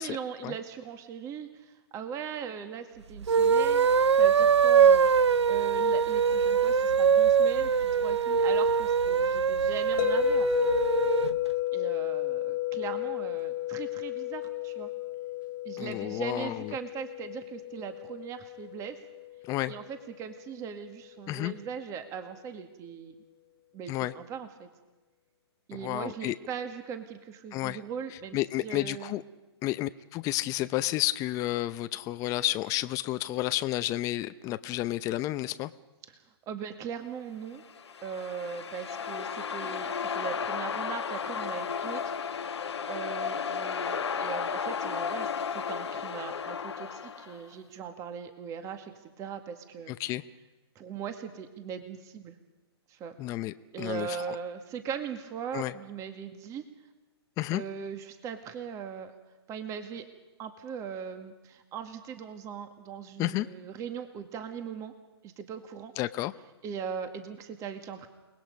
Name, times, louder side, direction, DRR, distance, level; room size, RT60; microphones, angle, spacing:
voice 1, 0.0-3.9 4.1-10.7 11.7-14.9 15.6-19.0 19.7-23.1 23.7-24.7 25.7-29.2 36.1-36.2 36.5-37.6 38.0-42.1 42.9-49.9 50.8-52.4 52.9-53.2 53.7-56.6 57.5-59.1 59.5-60.1 60.4-64.9 65.2-65.9 66.6-68.1, right 7 dB, 20° right, 7 dB, 1.9 m, -39 dB
sound 1, 3.2-11.4, right 6 dB, 85° right, 0.7 m, -23 dB
sound 2, 10.0-20.1, left 17 dB, 45° left, 1.1 m, -33 dB
voice 2, 15.8-16.7 19.4-19.7 21.3-21.5 23.9-24.1 25.8-26.4 27.5-27.8 28.3-29.2 29.6-35.7 49.9-50.2 53.2-54.4 55.5-55.7 57.4-57.6 63.2-63.5 66.0-66.3, left 16 dB, 25° left, 12 dB, 0.7 m, -31 dB
sound 3, 37.6-47.5, left 6 dB, 80° left, 1.2 m, -34 dB
30.0 x 20.0 x 5.3 m, 1.1 s
hypercardioid pair, 135°, 14 cm